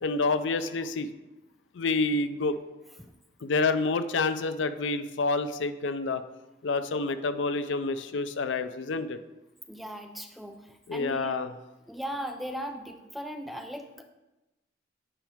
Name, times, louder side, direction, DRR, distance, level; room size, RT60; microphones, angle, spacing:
voice 1, 0.0-1.1 1.7-2.6 3.4-6.2 6.6-9.2 10.9-11.5, left 3 dB, 80° left, 11 dB, 0.5 m, -28 dB
voice 2, 9.7-11.4 11.9-14.0, equal, ahead, 4 dB, 0.4 m, -38 dB
8.7 x 4.9 x 3.5 m, 1.0 s
head